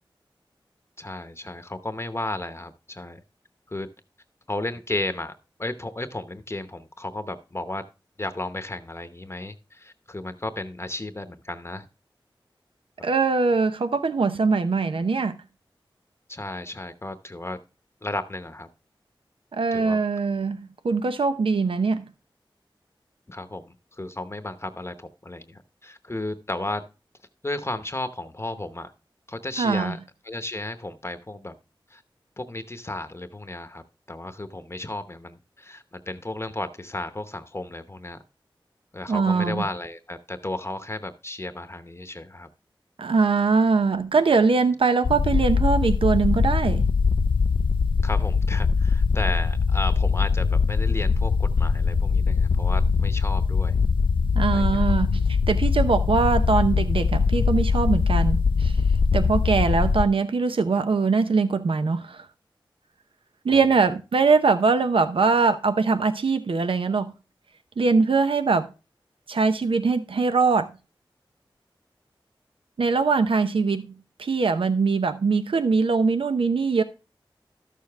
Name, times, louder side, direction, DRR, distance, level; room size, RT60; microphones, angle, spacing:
voice 1, 1.0-3.2 3.7-3.9 4.5-7.8 8.2-11.9 16.3-17.6 18.0-18.7 19.7-20.0 23.3-26.8 27.4-28.9 29.3-30.0 30.2-31.5 31.9-32.0 32.4-38.2 38.9-42.5 48.0-53.8 54.5-54.8 63.5-63.6, left 2 dB, 30° left, 0.8 m, -34 dB
voice 2, 13.0-15.4 19.5-22.1 29.6-30.0 39.1-39.6 43.0-46.9 54.3-58.8 59.1-62.3 63.4-67.1 67.8-68.7 69.3-70.7 72.8-73.9 74.2-76.8, right 4 dB, 90° right, 0.7 m, -22 dB
sound 1, 45.0-60.0, left 5 dB, 70° left, 0.4 m, -22 dB
12.5 x 6.8 x 3.4 m
wide cardioid pair, 60°, 9 cm